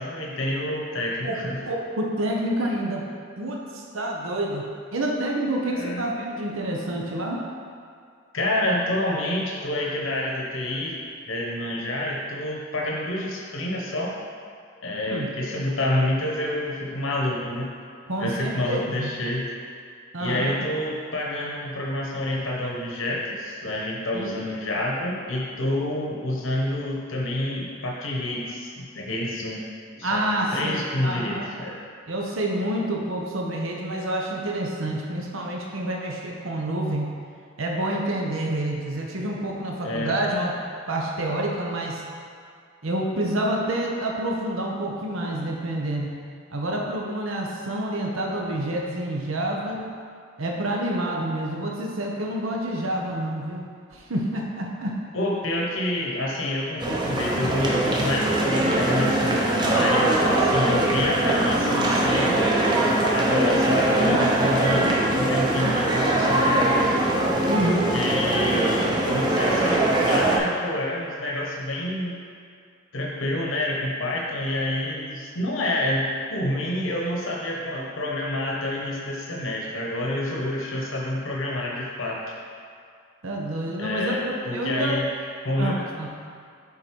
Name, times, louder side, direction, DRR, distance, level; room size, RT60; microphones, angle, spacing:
voice 1, 0.0-1.6 5.7-6.0 8.3-10.9 11.3-14.2 14.8-17.7 18.2-19.5 20.2-29.6 30.0-31.8 39.8-40.1 55.1-62.4 63.1-67.0 67.6-72.2 72.9-82.2 83.8-85.1 85.4-85.7, left 1 dB, 75° left, -3 dB, 1.0 m, -28 dB
voice 2, 1.6-3.0 3.4-4.6 4.9-7.4 15.0-15.3 18.1-19.1 20.1-20.6 24.1-24.3 30.0-31.5 32.1-37.1 37.6-40.5 40.9-42.0 42.8-46.1 46.5-49.9 50.4-53.6 53.9-55.0 67.4-67.9 83.2-85.0 85.6-86.1, right 1 dB, 80° right, -1 dB, 1.0 m, -28 dB
sound 1, 56.8-70.4, right 1 dB, 20° right, 0.7 m, -22 dB
7.2 x 4.0 x 4.6 m, 2.3 s
head